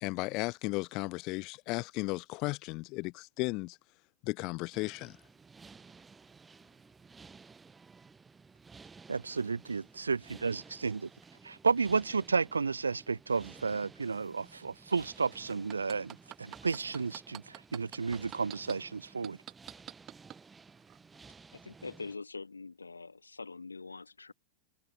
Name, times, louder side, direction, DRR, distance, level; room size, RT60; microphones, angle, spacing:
voice 1, 0.0-3.8 4.2-5.2, left 24 dB, 40° left, 1.5 m, -35 dB
sound 1, 4.7-22.2, right 4 dB, 15° right, 6.0 m, -55 dB
voice 2, 9.1-11.1 11.4-19.4, right 4 dB, 75° right, 0.5 m, -32 dB
sound 2, 15.5-18.7 19.2-20.4 20.9-21.0, right 13 dB, 35° right, 4.3 m, -45 dB
voice 3, 21.5-24.3, left 4 dB, 80° left, 4.0 m, -44 dB
figure-of-eight pair, 90°, 0 cm